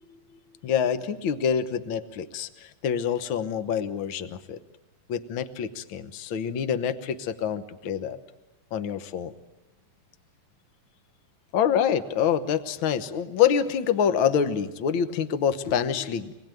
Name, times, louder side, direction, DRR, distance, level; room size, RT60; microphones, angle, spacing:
voice 1, 0.6-4.6 5.1-8.2 8.7-9.3 11.5-16.3, left 8 dB, 65° left, 10 dB, 1.2 m, -26 dB
26.5 x 20.0 x 9.1 m, 1.1 s
omnidirectional pair, 3.9 m